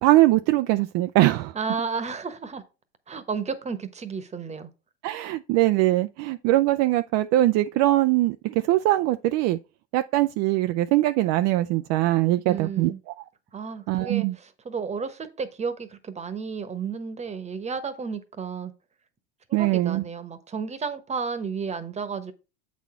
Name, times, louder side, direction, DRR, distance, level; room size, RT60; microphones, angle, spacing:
voice 1, 0.0-1.5 5.0-9.6 9.9-12.9 13.9-14.3 19.5-20.0, right 16 dB, 50° right, 0.5 m, -22 dB
voice 2, 1.5-2.6 3.1-4.7 12.5-13.0 13.5-18.7 19.5-22.3, right 5 dB, 20° right, 1.1 m, -32 dB
8.0 x 4.2 x 4.3 m
hypercardioid pair, 90°, 33 cm